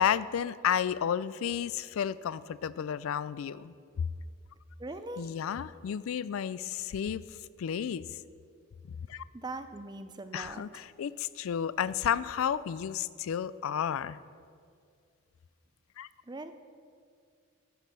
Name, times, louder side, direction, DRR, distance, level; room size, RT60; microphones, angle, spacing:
voice 1, 0.0-4.1 5.2-7.2 7.6-8.0 9.1-9.2 10.3-14.2 16.0-16.1, left 8 dB, 80° left, 18 dB, 0.3 m, -32 dB
voice 2, 4.8-5.3 9.3-10.6 16.3-16.5, right 2 dB, 20° right, 10 dB, 0.5 m, -40 dB
10.5 x 7.4 x 6.7 m, 2.2 s
head